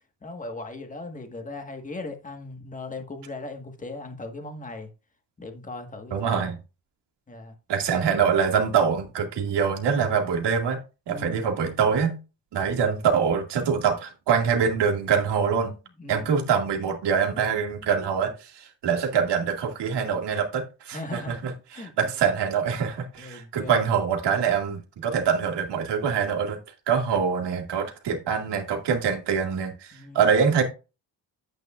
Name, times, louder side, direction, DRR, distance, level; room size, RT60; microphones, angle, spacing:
voice 1, 0.2-4.9 5.4-6.4 7.3-7.5 11.1-11.5 16.0-16.4 20.9-21.4 21.7-22.3 23.2-23.8 29.9-30.3, left 2 dB, 20° left, 1.5 m, -38 dB
voice 2, 6.1-6.5 7.7-10.8 11.1-12.2 12.5-15.7 16.1-26.6 26.9-30.6, right 6 dB, 70° right, 2.2 m, -24 dB
9.2 x 8.4 x 2.4 m
cardioid pair, 140°, 43 cm